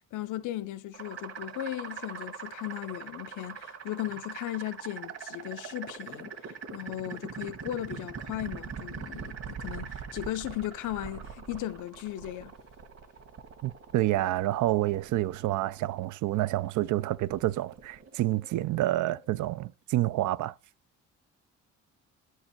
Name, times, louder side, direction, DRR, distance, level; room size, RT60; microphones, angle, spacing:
voice 1, 0.1-12.5, left 14 dB, 80° left, 0.7 m, -37 dB
sound 1, 0.9-19.7, right 6 dB, 55° right, 1.8 m, -43 dB
voice 2, 13.6-20.5, right 15 dB, 75° right, 0.5 m, -28 dB
8.5 x 4.7 x 4.5 m
cardioid pair, 90°, 30 cm